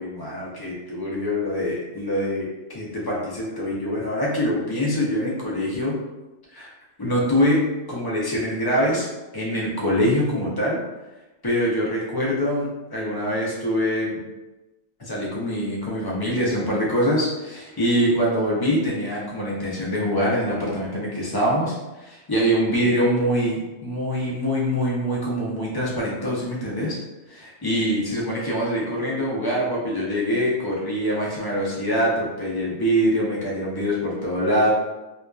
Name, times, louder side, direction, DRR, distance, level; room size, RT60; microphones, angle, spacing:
voice 1, 0.0-6.0 6.5-6.7 7.0-9.1 9.3-10.8 11.4-14.2 15.0-27.0 27.3-34.7, equal, 30° left, -5 dB, 0.4 m, -24 dB
2.7 x 2.2 x 2.2 m, 1.1 s
omnidirectional pair, 1.2 m